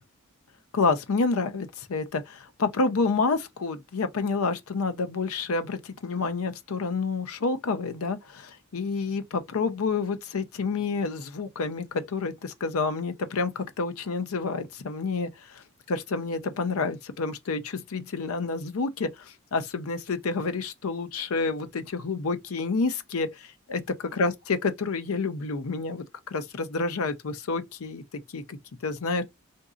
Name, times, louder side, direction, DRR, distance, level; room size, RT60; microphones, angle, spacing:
voice 1, 0.7-23.8 24.2-26.1 26.3-28.0 28.3-29.2, left 4 dB, 75° left, 0.6 m, -29 dB
3.8 x 2.6 x 2.4 m
head